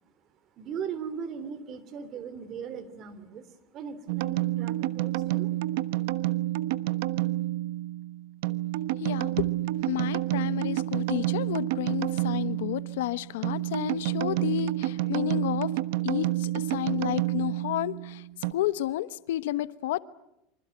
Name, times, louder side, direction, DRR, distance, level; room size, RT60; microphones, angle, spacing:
voice 1, 0.6-3.4 3.7-5.5, right 7 dB, 40° right, 3.2 m, -38 dB
sound 1, 4.1-18.5, right 16 dB, 75° right, 1.1 m, -29 dB
voice 2, 9.0-9.5 9.9-15.7 16.0-18.2 18.5-20.0, left 14 dB, 85° left, 1.1 m, -31 dB
28.5 x 25.5 x 7.9 m
supercardioid pair, 130°, 0 cm